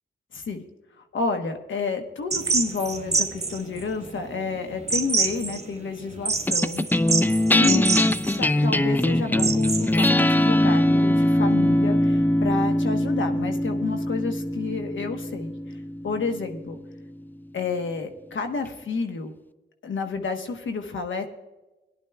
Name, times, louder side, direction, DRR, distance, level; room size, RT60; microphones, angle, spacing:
voice 1, 0.3-0.6 1.1-6.9 7.2-7.9 8.2-15.8 16.0-16.8 17.5-19.3 19.8-21.2, left 4 dB, 80° left, 6 dB, 1.1 m, -30 dB
sound 1, 2.3-10.1, right 4 dB, 35° right, 1.2 m, -27 dB
sound 2, 6.5-17.1, left 1 dB, 10° left, 0.4 m, -22 dB
18.0 x 11.0 x 2.3 m, 1.1 s
cardioid pair, 45°, 20 cm